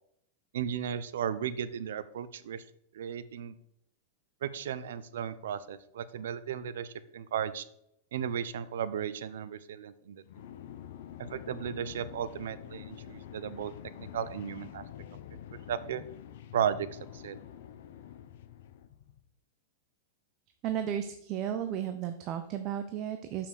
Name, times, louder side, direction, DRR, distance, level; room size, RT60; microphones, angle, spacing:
voice 1, 0.5-2.6 2.9-3.5 4.4-7.6 8.1-10.5 11.3-13.7 14.0-14.8 15.3-15.4 15.7-16.0 16.5-17.4, right 8 dB, 80° right, 15 dB, 0.7 m, -35 dB
sound 1, 10.2-19.2, left 10 dB, 60° left, 0.8 m, -47 dB
voice 2, 20.6-23.5, right 9 dB, 30° right, 7 dB, 0.6 m, -34 dB
7.2 x 5.8 x 6.5 m, 0.76 s
supercardioid pair, 165°, 0 cm